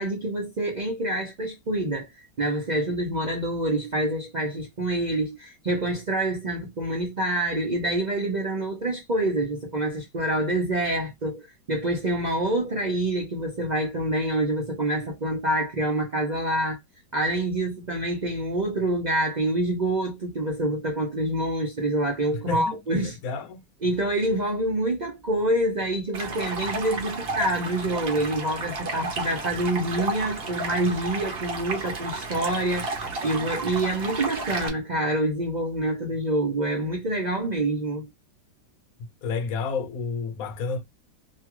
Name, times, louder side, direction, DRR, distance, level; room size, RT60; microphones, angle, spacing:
voice 1, 0.0-2.1 2.4-16.8 17.1-23.2 23.8-38.1, right 1 dB, 70° right, 0.4 m, -26 dB
voice 2, 22.3-23.6 39.0-40.8, left 4 dB, 60° left, 1.1 m, -31 dB
Stream, 26.1-34.7, right 3 dB, 50° right, 0.8 m, -32 dB
2.9 x 2.3 x 2.9 m
omnidirectional pair, 1.9 m